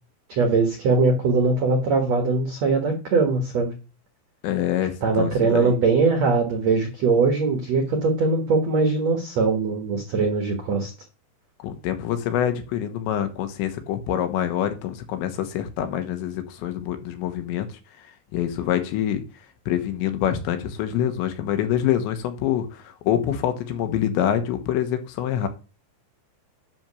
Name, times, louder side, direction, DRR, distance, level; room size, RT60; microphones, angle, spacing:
voice 1, 0.3-3.7 5.0-10.9, right 4 dB, 80° right, 1.5 m, -21 dB
voice 2, 4.4-5.7 11.6-17.7 18.3-19.2 19.7-25.5, left 10 dB, 75° left, 3.2 m, -25 dB
10.5 x 4.3 x 6.8 m
omnidirectional pair, 5.5 m